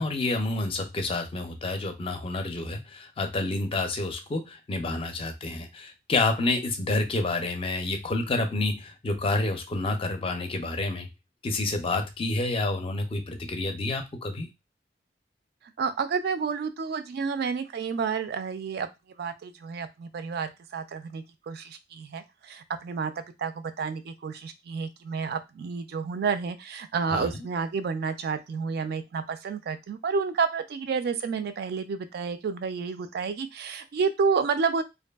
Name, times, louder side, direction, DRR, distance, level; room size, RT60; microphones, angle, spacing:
voice 1, 0.0-11.1 11.4-14.5 27.1-27.5, left 2 dB, 30° left, 6 dB, 0.4 m, -29 dB
voice 2, 15.8-18.9 19.2-34.8, right 5 dB, 60° right, 10 dB, 0.3 m, -30 dB
2.5 x 2.5 x 2.2 m, 0.23 s
head